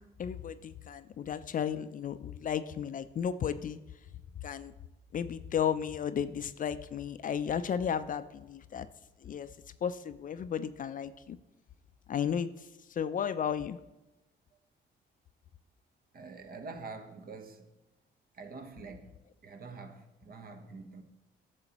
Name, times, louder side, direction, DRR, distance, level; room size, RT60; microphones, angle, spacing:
voice 1, 0.2-3.8 4.4-4.7 5.1-8.9 9.2-9.5 9.8-11.4 12.1-12.5 13.0-13.8, left 8 dB, 45° left, 0.4 m, -33 dB
voice 2, 16.1-17.7 18.4-19.2 19.4-21.0, right 4 dB, 50° right, 1.0 m, -46 dB
10.5 x 6.9 x 2.9 m
cardioid pair, 90°, 20 cm